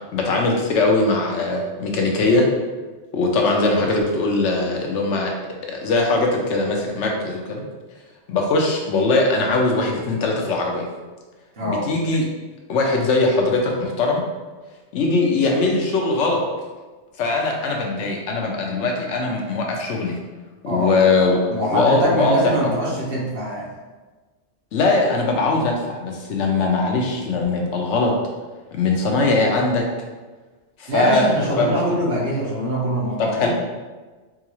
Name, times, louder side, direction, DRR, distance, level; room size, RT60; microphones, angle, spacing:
voice 1, 0.1-2.5 3.1-5.4 5.7-7.6 8.3-10.8 11.6-12.2 12.7-14.2 14.9-16.4 17.2-20.2 20.6-21.4 21.7-22.4 22.6-22.8 24.7-28.1 28.7-29.8 30.8-32.0 33.2-33.5, left 3 dB, 85° left, 1 dB, 1.0 m, -20 dB
voice 2, 11.6-11.9 20.7-21.0 21.5-23.7 30.9-33.5, right 1 dB, 55° right, -5 dB, 1.1 m, -23 dB
3.9 x 2.4 x 3.0 m, 1.3 s
omnidirectional pair, 1.2 m